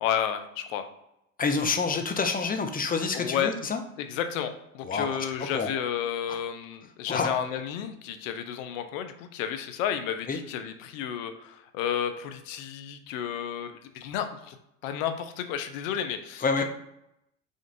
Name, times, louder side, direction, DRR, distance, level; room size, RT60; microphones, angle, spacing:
voice 1, 0.0-0.8 3.1-3.5 4.0-14.6 14.8-16.6, left 9 dB, 75° left, 8 dB, 0.7 m, -32 dB
voice 2, 1.4-3.8 4.8-5.7 6.3-6.4 7.1-7.3 10.3-10.4 16.4-16.6, left 4 dB, 20° left, 5 dB, 0.7 m, -28 dB
5.1 x 2.5 x 2.6 m, 0.82 s
hypercardioid pair, 70°, 40 cm